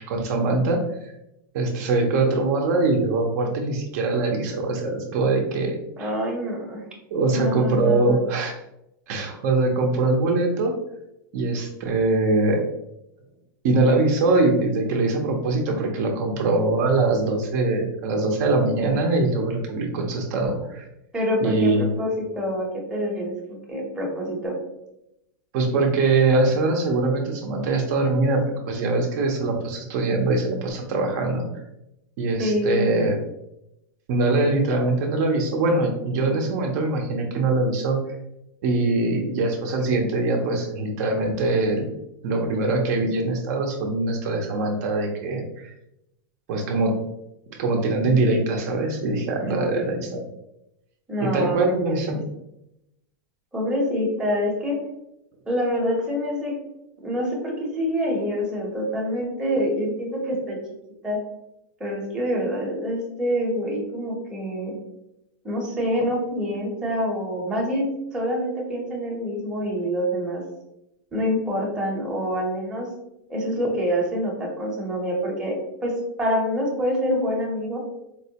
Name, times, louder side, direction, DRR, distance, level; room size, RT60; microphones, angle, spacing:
voice 1, 0.1-1.1 1.5-6.1 7.1-8.6 9.1-10.8 11.3-12.6 13.6-20.8 21.4-21.9 25.5-31.4 32.2-33.2 34.1-38.0 38.6-41.9 42.2-45.7 46.5-47.0 47.6-50.2 51.2-52.2, right 2 dB, 50° right, 2 dB, 0.6 m, -22 dB
voice 2, 6.0-6.8 7.3-8.2 21.1-22.1 22.3-24.5 32.4-32.9 49.4-50.0 51.1-52.0 53.5-54.8 55.5-56.5 57.0-60.6 61.0-61.2 61.8-64.8 65.4-70.4 71.1-72.9 73.3-75.6 75.8-75.9 76.2-77.8, equal, 5° right, -3 dB, 0.7 m, -26 dB
4.4 x 2.1 x 2.7 m, 0.85 s
supercardioid pair, 155°, 12 cm